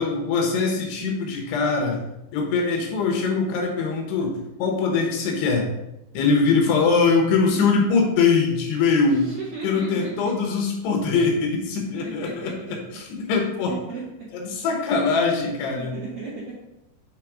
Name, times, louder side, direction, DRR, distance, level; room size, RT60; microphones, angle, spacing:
voice 1, 0.0-2.0 2.3-5.7 6.1-9.3 9.6-13.7 14.3-15.9, left 4 dB, 80° left, 0 dB, 3.2 m, -22 dB
voice 2, 9.0-10.4 12.0-12.8 13.2-14.3 15.8-16.7, right 4 dB, 60° right, -7 dB, 2.4 m, -36 dB
7.5 x 3.5 x 4.8 m, 0.91 s
omnidirectional pair, 4.8 m